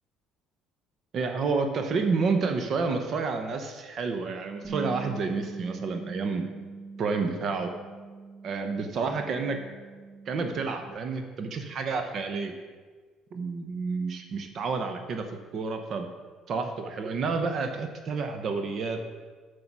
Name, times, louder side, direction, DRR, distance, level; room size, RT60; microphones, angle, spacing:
voice 1, 1.1-6.5 7.0-7.7 8.4-9.6 10.3-12.5 13.3-16.1 16.5-19.0, right 4 dB, 45° right, 6 dB, 0.9 m, -30 dB
Bass guitar, 4.6-10.9, right 4 dB, 25° right, 2.1 m, -41 dB
9.6 x 6.5 x 6.0 m, 1.5 s
cardioid pair, 130°, 0 cm